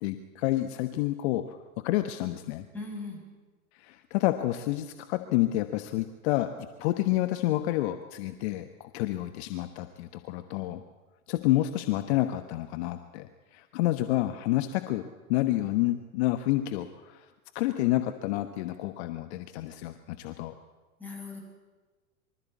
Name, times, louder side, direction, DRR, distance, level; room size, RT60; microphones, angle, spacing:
voice 1, 0.0-2.7 3.7-10.8 11.3-15.0 15.3-17.3 17.5-20.5, left 15 dB, 50° left, 9 dB, 1.2 m, -29 dB
voice 2, 2.7-3.3 21.0-21.4, left 3 dB, 5° left, -2 dB, 7.5 m, -38 dB
24.0 x 13.5 x 8.4 m, 1.3 s
hypercardioid pair, 100°, 42 cm